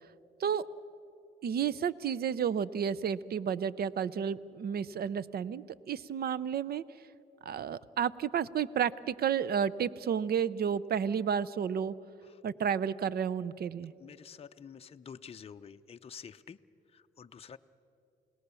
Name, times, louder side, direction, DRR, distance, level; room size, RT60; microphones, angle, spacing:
voice 1, 1.4-6.8 7.4-11.9 12.4-13.9, right 8 dB, 50° right, 19 dB, 0.6 m, -31 dB
voice 2, 14.0-16.6 16.9-17.6, left 7 dB, 30° left, 8 dB, 0.6 m, -49 dB
29.0 x 18.5 x 6.9 m, 2.8 s
cardioid pair, 90°, 20 cm